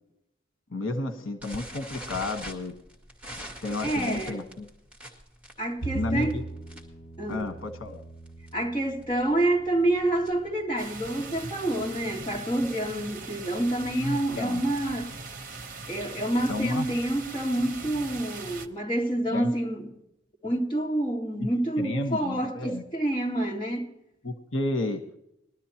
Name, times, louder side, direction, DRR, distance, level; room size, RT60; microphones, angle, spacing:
voice 1, 0.7-2.7 3.6-4.7 5.9-6.4 7.3-8.0 14.0-14.6 16.5-16.9 19.3-19.5 21.8-22.8 24.2-25.0, left 2 dB, 85° left, 1.3 m, -31 dB
sound 1, 1.4-7.0 7.3-7.6 7.9-8.0 8.3-8.5 9.0-10.6, equal, 5° right, 2.1 m, -42 dB
voice 2, 3.8-4.5 5.6-6.4 7.2-7.5 8.5-15.1 15.9-19.9 20.4-23.9, right 1 dB, 25° left, 2.3 m, -28 dB
Bowed string instrument, 5.8-12.1, right 3 dB, 65° left, 1.6 m, -41 dB
sound 2, 10.8-18.7, right 3 dB, 45° right, 0.9 m, -40 dB
21.0 x 12.5 x 2.9 m
head